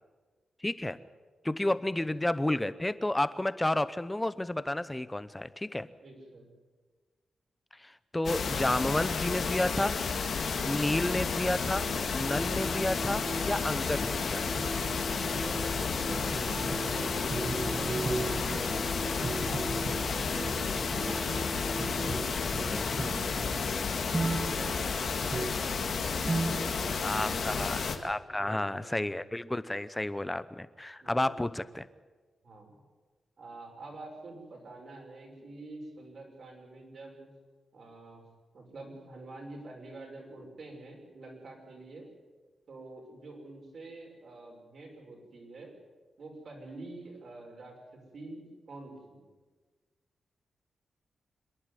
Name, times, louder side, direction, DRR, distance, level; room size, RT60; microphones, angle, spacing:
voice 1, 0.6-1.0 1.4-5.9 7.8-10.0 10.6-11.8 12.1-14.6 22.5-23.1 27.0-31.9, left 1 dB, 10° left, 15 dB, 0.8 m, -31 dB
voice 2, 1.6-2.0 6.0-6.5 10.4-10.9 12.5-12.9 13.7-14.0 15.0-21.2 23.3-27.0 27.2-27.6 28.3-29.1 31.0-31.3 32.4-32.8 33.4-37.3 37.7-38.3 38.5-42.1 42.7-45.7 46.2-47.8 48.1-49.2, right 2 dB, 55° right, 1 dB, 6.0 m, -47 dB
sound 1, 8.2-28.0, left 5 dB, 60° left, 2.0 m, -32 dB
sound 2, 11.2-23.1, right 1 dB, 10° right, 2.9 m, -41 dB
sound 3, 16.1-26.7, right 3 dB, 25° right, 0.6 m, -37 dB
26.0 x 11.0 x 9.8 m, 1.3 s
wide cardioid pair, 130°, 0 cm